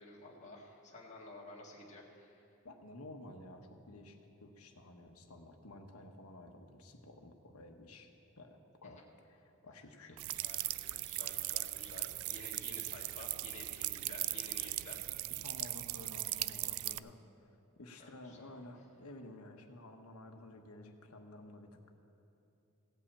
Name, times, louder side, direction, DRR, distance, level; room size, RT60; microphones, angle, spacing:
voice 1, 0.0-2.4 10.1-15.0 17.9-18.7, left 2 dB, 35° left, -3 dB, 1.7 m, -52 dB
voice 2, 2.6-8.1 8.4-10.3 15.4-17.2 17.8-21.9, left 1 dB, 80° left, 4 dB, 1.2 m, -52 dB
sound 1, 10.2-17.0, right 17 dB, 65° right, 0.3 m, -39 dB
16.5 x 5.6 x 8.5 m, 2.8 s
head